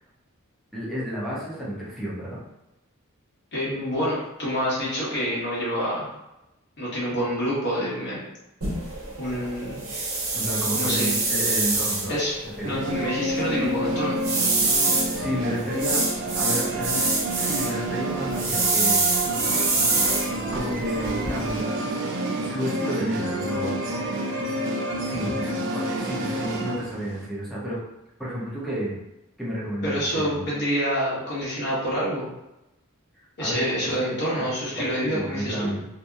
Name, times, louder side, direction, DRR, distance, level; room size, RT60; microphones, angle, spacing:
voice 1, 0.7-2.4 10.3-12.1 12.6-12.7 15.1-16.1 16.3-17.0 17.4-19.1 20.5-21.8 22.4-23.7 25.0-27.8 28.2-29.0 29.4-30.4 33.4-34.4 34.7-35.9, equal, ahead, -8 dB, 0.7 m, -31 dB
voice 2, 3.5-6.1 6.8-8.2 9.2-9.8 10.7-11.2 12.1-12.4 12.6-14.2 29.8-32.3 33.4-35.7, equal, 55° left, -7 dB, 1.1 m, -27 dB
sound 1, 8.6-21.6, right 3 dB, 85° right, 1.0 m, -26 dB
sound 2, 12.6-27.3, right 1 dB, 60° right, 0.4 m, -29 dB
2.7 x 2.0 x 2.3 m, 0.93 s
head